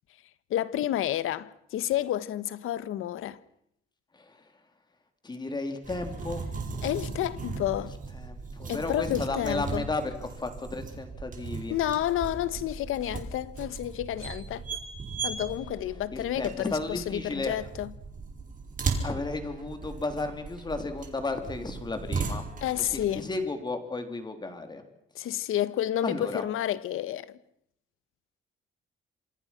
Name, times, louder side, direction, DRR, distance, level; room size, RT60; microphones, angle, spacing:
voice 1, 0.5-3.4 6.8-7.9 8.7-9.8 11.7-14.6 15.2-17.9 22.6-23.3 25.1-27.4, left 12 dB, 90° left, 1.3 m, -30 dB
voice 2, 4.1-4.5 5.2-6.5 7.7-7.9 8.1-11.8 16.1-17.6 19.0-22.4 22.9-24.8 26.0-26.4, left 3 dB, 20° left, 3.6 m, -34 dB
sound 1, 5.8-23.2, right 4 dB, 40° right, 5.4 m, -37 dB
27.0 x 26.5 x 6.0 m
cardioid pair, 145°, 21 cm